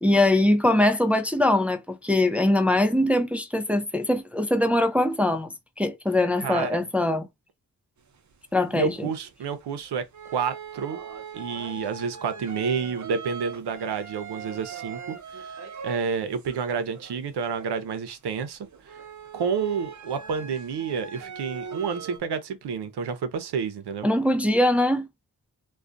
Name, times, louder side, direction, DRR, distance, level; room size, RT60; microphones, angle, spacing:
voice 1, 0.0-7.3 8.5-9.1 24.0-25.1, left 1 dB, 5° right, 0.4 m, -22 dB
voice 2, 6.4-6.8 8.7-10.0 10.3-11.0 11.3-15.6 15.8-19.0 19.3-24.1, right 6 dB, 85° right, 0.6 m, -29 dB
sound 1, 8.3-8.4 8.9-9.6 10.1-16.1 16.4-17.9 18.4-22.2, right 6 dB, 50° right, 0.7 m, -40 dB
2.3 x 2.2 x 2.5 m
cardioid pair, 40°, 39 cm